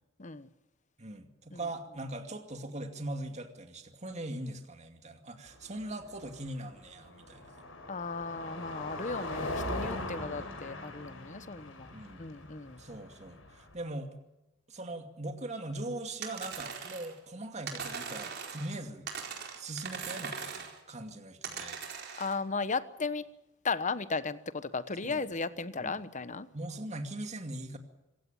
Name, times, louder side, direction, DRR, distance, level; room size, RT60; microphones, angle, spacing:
voice 1, 1.0-7.7 10.2-10.5 11.9-12.3 12.8-14.1 14.7-19.1 19.6-21.8 25.0-25.3 25.8-26.0 26.5-27.8, right 1 dB, 35° right, 2.5 m, -41 dB
Car passing by, 5.5-13.7, left 1 dB, 85° left, 5.1 m, -41 dB
voice 2, 7.9-11.9 12.2-12.8 22.2-23.3 23.6-26.5, left 4 dB, 40° left, 1.1 m, -35 dB
sound 1, 16.2-17.2 17.7-18.8 19.1-20.8 21.4-22.4, right 6 dB, 55° right, 4.4 m, -40 dB
26.0 x 16.5 x 9.0 m
head